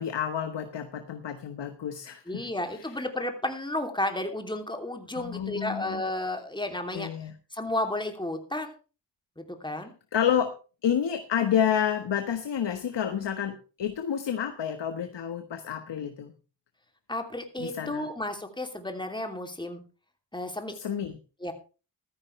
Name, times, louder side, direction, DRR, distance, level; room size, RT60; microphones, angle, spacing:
voice 1, 0.0-2.5 2.7-2.9 5.1-6.0 6.9-7.3 10.1-10.5 10.8-16.3 17.6-18.1 20.7-21.1, left 8 dB, 75° left, 7 dB, 1.5 m, -29 dB
voice 2, 2.3-7.1 7.5-8.7 9.4-9.9 17.1-19.8 20.3-20.7 21.4-21.5, left 1 dB, 10° left, 5 dB, 2.9 m, -32 dB
15.0 x 13.5 x 3.3 m, 0.34 s
wide cardioid pair, 90°, 43 cm